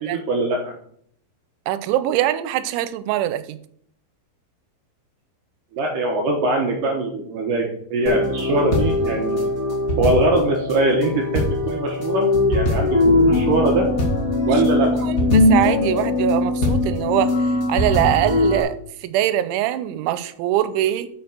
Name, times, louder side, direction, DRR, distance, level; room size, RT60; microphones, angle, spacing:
voice 1, 0.0-0.7 5.7-9.4 10.0-13.9 14.5-14.9, right 2 dB, 70° right, 1 dB, 2.0 m, -22 dB
voice 2, 1.7-3.6 14.5-14.6 15.0-17.4 17.7-21.1, right 13 dB, 90° right, 14 dB, 3.0 m, -22 dB
sound 1, 8.0-18.6, left 2 dB, 50° left, 0.9 m, -20 dB
7.1 x 6.5 x 6.5 m, 0.63 s
omnidirectional pair, 5.3 m